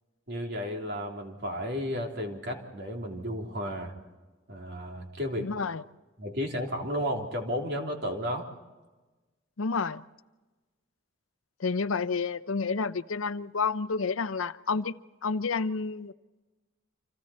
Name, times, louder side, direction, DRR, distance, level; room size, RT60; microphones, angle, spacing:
voice 1, 0.3-3.9 4.5-5.5 6.2-8.5, equal, 55° right, 2 dB, 3.4 m, -33 dB
voice 2, 5.4-5.8 9.6-10.0 11.6-14.9 15.2-16.1, left 4 dB, 90° left, 14 dB, 0.7 m, -30 dB
29.5 x 26.5 x 4.3 m, 1.2 s
head